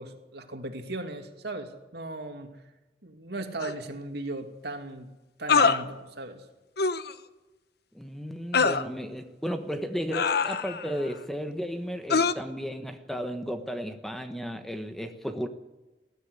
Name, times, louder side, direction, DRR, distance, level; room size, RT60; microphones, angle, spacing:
voice 1, 0.0-2.6 3.0-5.1 5.4-6.5, right 2 dB, 65° right, 5 dB, 2.6 m, -37 dB
sound 1, 3.6-3.7 5.5-5.8 6.8-7.1 8.5-8.8 10.1-10.9 12.1-12.3, left 5 dB, 60° left, 1.0 m, -23 dB
voice 2, 7.9-15.5, equal, ahead, 7 dB, 1.2 m, -34 dB
20.5 x 13.5 x 9.7 m, 1.1 s
head